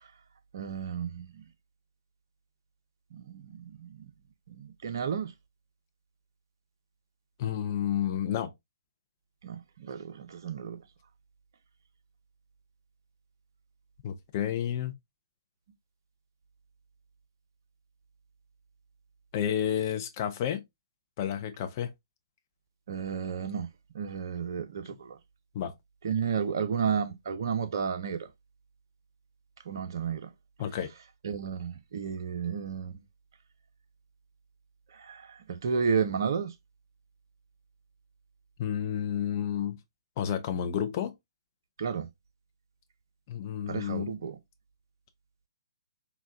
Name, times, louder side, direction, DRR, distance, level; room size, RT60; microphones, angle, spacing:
voice 1, 0.5-1.3 3.2-4.1 4.5-5.3 9.4-10.8 22.9-23.7 23.9-25.2 26.0-28.2 29.7-30.3 31.2-33.0 35.0-35.2 35.5-36.5 41.8-42.1 43.7-44.4, right 6 dB, 50° right, 0.6 m, -32 dB
voice 2, 7.4-8.5 14.0-15.0 19.3-20.6 21.2-21.9 25.5-25.7 30.6-30.9 38.6-39.8 40.2-41.1 43.3-44.1, left 9 dB, 35° left, 0.5 m, -30 dB
3.9 x 2.2 x 2.5 m
figure-of-eight pair, 130°, 3 cm